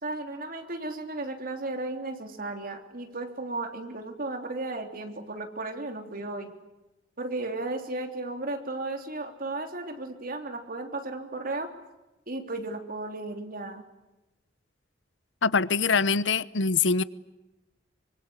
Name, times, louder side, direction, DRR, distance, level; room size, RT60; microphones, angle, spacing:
voice 1, 0.0-6.5 7.2-11.7 12.3-13.8, right 2 dB, 50° right, 3.4 m, -34 dB
voice 2, 15.4-17.0, left 5 dB, 80° left, 0.9 m, -24 dB
25.0 x 23.5 x 9.9 m
head